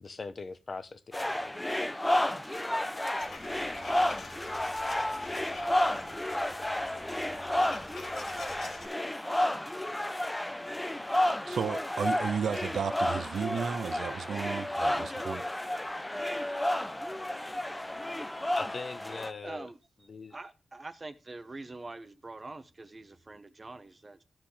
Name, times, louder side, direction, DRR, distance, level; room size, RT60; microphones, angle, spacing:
voice 1, 0.0-1.5 18.6-19.7 20.1-20.4, left 4 dB, 50° left, 0.9 m, -40 dB
sound 1, 1.1-19.3, left 1 dB, 10° left, 0.7 m, -31 dB
sound 2, 3.2-8.9, left 3 dB, 70° left, 2.4 m, -47 dB
voice 2, 11.5-15.4, right 7 dB, 85° right, 0.5 m, -33 dB
voice 3, 19.4-19.8 20.3-24.2, right 2 dB, 30° right, 0.9 m, -44 dB
13.5 x 6.0 x 3.3 m
cardioid pair, 85°, 0 cm